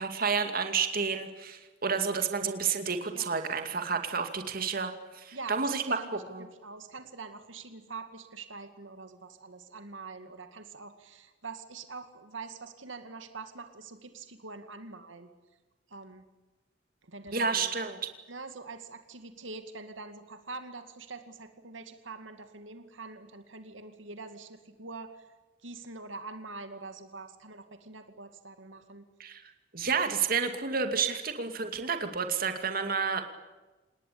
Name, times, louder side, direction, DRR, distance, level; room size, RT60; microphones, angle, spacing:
voice 1, 0.0-4.9 5.2-6.4 17.3-18.0 29.2-29.4 29.7-33.3, right 5 dB, 50° right, 7 dB, 2.4 m, -30 dB
voice 2, 5.3-15.3 15.9-16.2 17.0-17.7 18.3-25.3 25.6-29.1, right 3 dB, 85° right, 8 dB, 2.2 m, -44 dB
28.0 x 20.0 x 8.6 m, 1.2 s
head